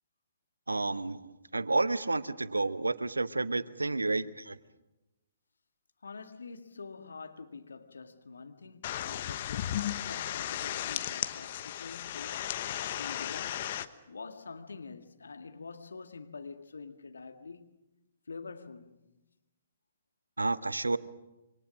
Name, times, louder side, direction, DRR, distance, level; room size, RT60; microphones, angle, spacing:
voice 1, 0.7-1.2 1.5-4.6 20.4-21.0, right 3 dB, 80° right, 1.0 m, -30 dB
voice 2, 6.0-13.7 14.1-17.6 18.3-19.0, left 4 dB, 70° left, 1.8 m, -46 dB
sound 1, 8.8-13.9, left 11 dB, 45° left, 1.1 m, -35 dB
27.0 x 24.5 x 6.4 m
figure-of-eight pair, 125°, 0 cm